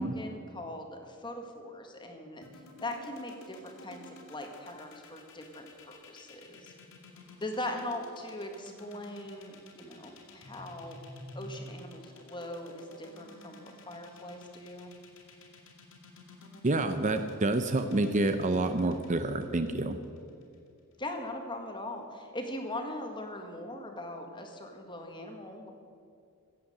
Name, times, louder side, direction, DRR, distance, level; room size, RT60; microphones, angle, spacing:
voice 1, 0.0-2.4 2.8-6.7 7.4-11.0 11.3-14.9 21.0-25.7, left 1 dB, 20° left, 3 dB, 1.7 m, -40 dB
sound 1, 2.4-20.5, left 2 dB, 65° left, 2.5 m, -51 dB
voice 2, 16.6-20.0, right 2 dB, 35° right, 8 dB, 0.6 m, -28 dB
15.5 x 8.7 x 7.8 m, 2.4 s
head